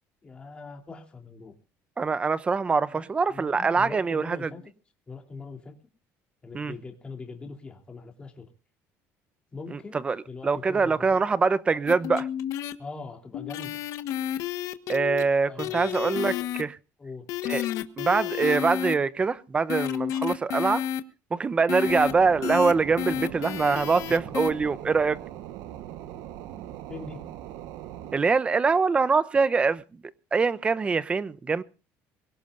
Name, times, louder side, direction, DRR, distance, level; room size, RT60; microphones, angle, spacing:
voice 1, 0.2-1.6 2.9-4.7 5.1-5.8 6.4-8.5 9.5-11.2 12.8-13.8 15.5-16.3 17.0-17.3 26.9-27.3, left 4 dB, 15° left, 3.3 m, -42 dB
voice 2, 2.0-4.5 6.5-6.7 9.7-9.8 10.0-10.2 10.4-12.3 14.9-16.8 17.5-17.6 18.0-20.8 21.3-25.2 28.1-29.8 30.3-31.6, right 4 dB, 20° right, 0.8 m, -24 dB
sound 1, 11.9-12.7 13.3-15.2 15.6-16.6 17.3-18.9 19.7-21.0 21.7-22.1 22.4-22.7 23.0-24.5, left 11 dB, 60° left, 1.4 m, -31 dB
sound 2, 21.8-28.2, right 12 dB, 75° right, 1.2 m, -40 dB
24.0 x 17.0 x 2.6 m
cardioid pair, 155°, 6 cm